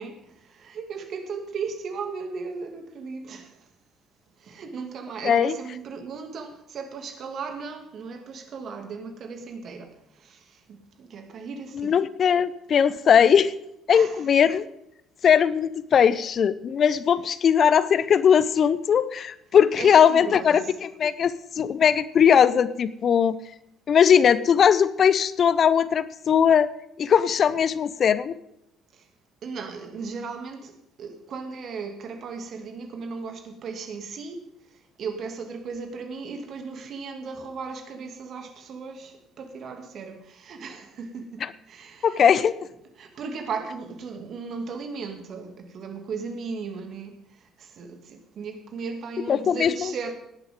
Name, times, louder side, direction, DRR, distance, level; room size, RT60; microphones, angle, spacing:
voice 1, 0.0-3.7 4.4-12.0 13.9-14.2 19.8-20.7 28.9-29.1 29.4-42.2 43.0-50.1, right 5 dB, 50° right, 2.3 m, -36 dB
voice 2, 5.2-5.5 11.7-13.5 13.9-14.6 15.2-23.4 23.9-26.7 27.0-28.4 41.4-41.5 42.0-42.5 49.3-50.1, left 8 dB, 50° left, 0.7 m, -20 dB
18.0 x 11.0 x 3.7 m
figure-of-eight pair, 50°, 0 cm